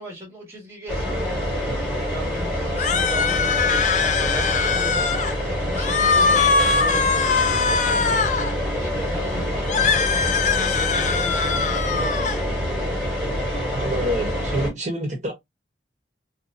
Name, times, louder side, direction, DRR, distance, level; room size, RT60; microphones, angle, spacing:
voice 1, 0.0-12.8, equal, 15° right, 1.2 m, -37 dB
sound 1, 0.9-14.7, equal, 5° left, 1.6 m, -26 dB
sound 2, 2.7-5.4 5.7-8.5 9.6-12.4, left 5 dB, 45° left, 0.4 m, -22 dB
voice 2, 13.7-15.3, right 1 dB, 45° right, 1.1 m, -27 dB
4.1 x 2.2 x 2.5 m
head